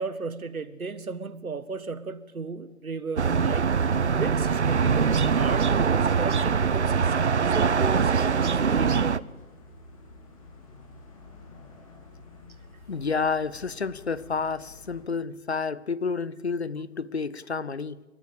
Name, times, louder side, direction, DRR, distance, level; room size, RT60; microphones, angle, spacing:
voice 1, 0.0-3.7 4.2-9.3, right 4 dB, 75° right, 1.6 m, -35 dB
sound 1, 3.2-9.2, right 6 dB, 50° right, 0.6 m, -23 dB
sound 2, 7.1-15.0, left 3 dB, 25° left, 3.2 m, -49 dB
voice 2, 12.9-18.0, left 5 dB, 50° left, 0.7 m, -30 dB
29.5 x 13.5 x 8.6 m
figure-of-eight pair, 165°, 43 cm